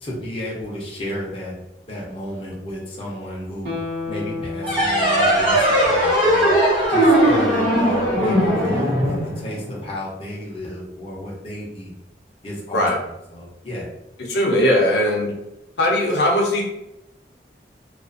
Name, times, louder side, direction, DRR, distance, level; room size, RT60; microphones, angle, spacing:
voice 1, 0.0-1.5 1.9-3.7 4.1-6.5 6.9-11.9 12.4-12.9 13.3-13.9, equal, 30° left, -5 dB, 0.6 m, -32 dB
Guitar, 3.6-6.9 7.3-7.4, left 3 dB, 70° right, 0.8 m, -33 dB
sound 1, 4.6-9.9, right 1 dB, 30° right, 0.9 m, -18 dB
voice 2, 14.3-15.3 15.8-16.6, left 1 dB, 75° left, -2 dB, 0.6 m, -19 dB
2.4 x 2.3 x 2.4 m, 0.90 s
head